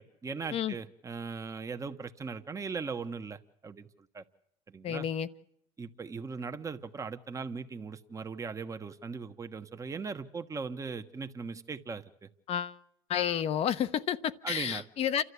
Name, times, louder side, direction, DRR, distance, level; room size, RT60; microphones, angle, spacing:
voice 1, 0.0-3.9 4.1-4.2 4.7-5.1 5.8-12.0 14.4-14.8, right 5 dB, 25° right, 7 dB, 1.3 m, -39 dB
voice 2, 4.8-5.3 12.5-12.8 13.1-15.2, left 9 dB, 50° left, 12 dB, 1.0 m, -30 dB
28.5 x 13.0 x 8.4 m, 0.72 s
supercardioid pair, 100°, 13 cm